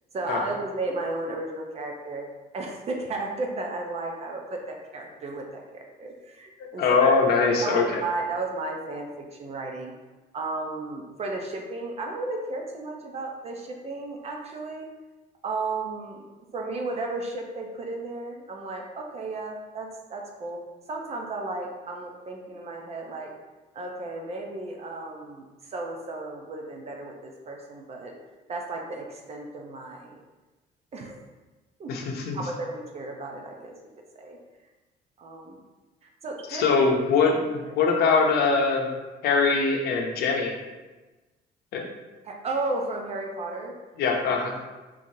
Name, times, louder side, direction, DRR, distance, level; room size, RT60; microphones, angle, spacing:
voice 1, 0.1-2.3 2.5-7.1 7.6-9.9 10.3-14.9 15.4-16.2 16.5-20.6 20.9-23.3 23.7-28.1 28.5-30.2 30.9-31.2 31.8-31.9 32.3-33.7 34.1-34.4 35.2-35.6 36.0-36.7 42.3-43.7 44.3-44.7, right 2 dB, 40° right, 1 dB, 0.6 m, -34 dB
voice 2, 6.6-8.0 31.9-32.4 36.5-38.9 39.2-40.6 41.7-41.9 44.0-44.5, left 4 dB, 70° left, 1 dB, 0.7 m, -22 dB
3.8 x 3.1 x 2.7 m, 1.2 s
cardioid pair, 110°, 17 cm